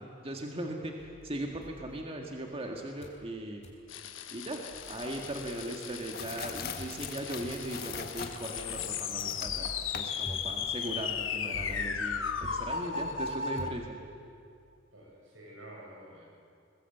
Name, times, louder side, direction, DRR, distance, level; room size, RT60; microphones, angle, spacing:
voice 1, 0.0-3.6 4.3-13.9, right 1 dB, 30° right, 1 dB, 1.9 m, -39 dB
sound 1, 1.0-2.6 3.0-3.3 3.6-3.9 4.4-4.5 4.7-5.8 6.8-14.4, equal, 35° left, 3.8 m, -47 dB
sound 2, 3.9-13.7, left 6 dB, 85° left, 1.3 m, -36 dB
sound 3, 4.8-11.9, left 5 dB, 55° left, 1.6 m, -44 dB
voice 2, 14.9-16.2, right 1 dB, 90° right, -2 dB, 7.8 m, -49 dB
21.5 x 21.0 x 8.0 m, 2.4 s
head